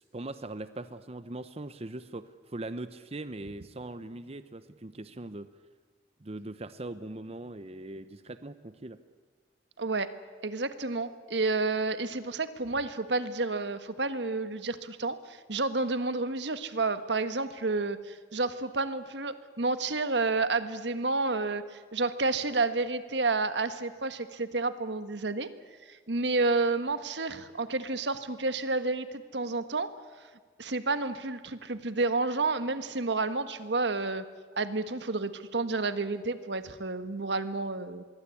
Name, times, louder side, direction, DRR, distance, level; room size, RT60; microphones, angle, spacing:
voice 1, 0.0-5.5 6.2-9.0, right 2 dB, 35° right, 12 dB, 0.8 m, -40 dB
voice 2, 9.8-10.1 10.4-25.5 25.9-29.1 29.3-29.9 30.6-34.2 34.5-38.0, right 3 dB, 80° right, 11 dB, 1.5 m, -30 dB
25.5 x 22.0 x 8.5 m, 1.5 s
head